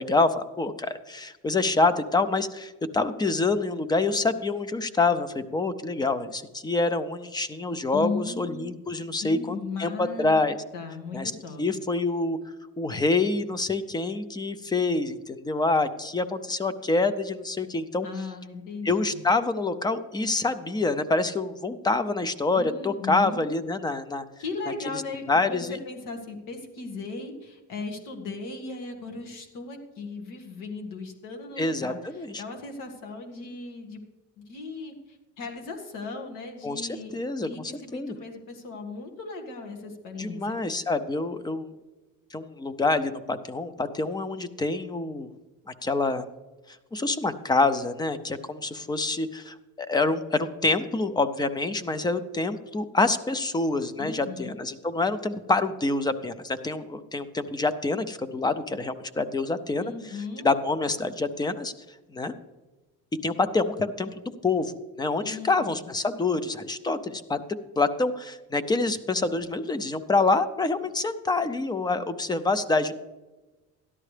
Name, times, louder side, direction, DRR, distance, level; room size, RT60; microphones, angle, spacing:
voice 1, 0.0-10.6 11.1-11.3 11.6-12.4 12.8-18.1 18.8-24.2 25.3-25.8 31.6-32.4 36.6-38.2 40.2-41.7 42.3-45.3 45.8-46.3 46.9-60.2 60.4-61.7 62.1-62.3 63.2-64.1 64.4-67.4 67.8-73.0, left 3 dB, 15° left, 13 dB, 0.4 m, -26 dB
voice 2, 7.9-8.7 9.2-10.3 10.7-11.6 18.0-19.2 22.6-23.5 24.4-34.0 34.4-37.1 37.4-40.6 54.0-54.6 59.8-60.5 65.2-65.8, left 4 dB, 85° left, 4 dB, 1.8 m, -37 dB
13.5 x 11.0 x 3.3 m, 1.2 s
cardioid pair, 150°, 31 cm